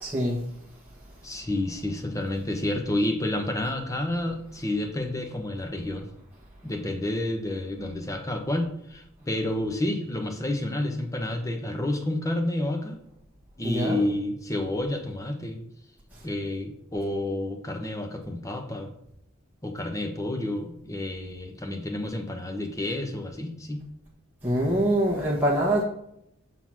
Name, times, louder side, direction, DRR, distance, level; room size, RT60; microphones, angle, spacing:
voice 1, 0.0-0.4 13.6-14.1 24.4-25.8, right 1 dB, 10° right, 1.1 m, -24 dB
voice 2, 1.2-6.1 6.6-13.0 13.6-15.6 16.2-18.9 19.6-23.8, left 1 dB, 15° left, 0.8 m, -30 dB
5.9 x 3.8 x 6.1 m
head